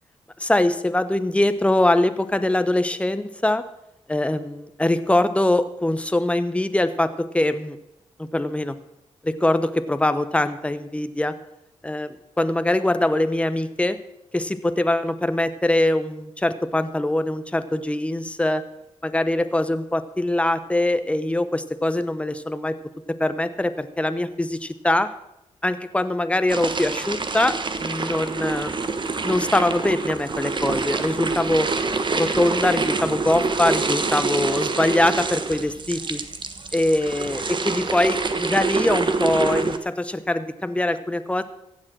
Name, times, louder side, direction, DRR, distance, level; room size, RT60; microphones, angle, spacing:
voice 1, 0.4-3.6 4.1-7.8 8.2-8.7 9.2-11.3 11.8-14.0 14.3-18.6 19.0-22.8 23.1-25.1 25.6-28.7 29.2-31.7 32.1-36.2 36.7-41.4, left 1 dB, 10° left, 11 dB, 0.9 m, -23 dB
sound 1, 26.5-39.8, right 4 dB, 40° right, 1.2 m, -26 dB
15.5 x 7.4 x 6.2 m, 0.85 s
cardioid pair, 65°, 12 cm